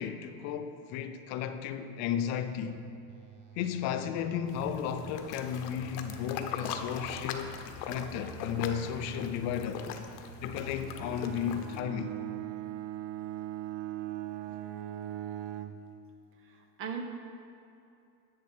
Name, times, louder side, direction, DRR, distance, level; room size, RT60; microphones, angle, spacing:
voice 1, 0.0-2.8 3.6-7.6 7.8-9.9 10.4-12.1, left 8 dB, 40° left, 0.4 m, -34 dB
sound 1, 2.2-2.7 3.1-5.1 5.5-7.6 7.9-9.9 10.3-11.8, right 4 dB, 55° right, 1.0 m, -49 dB
sound 2, 4.5-11.8, left 7 dB, 85° left, 1.0 m, -41 dB
Bowed string instrument, 11.0-15.9, right 13 dB, 80° right, 0.7 m, -39 dB
voice 2, 16.5-17.0, right 7 dB, 30° right, 0.5 m, -38 dB
10.5 x 7.6 x 4.3 m
cardioid pair, 165°, 45 cm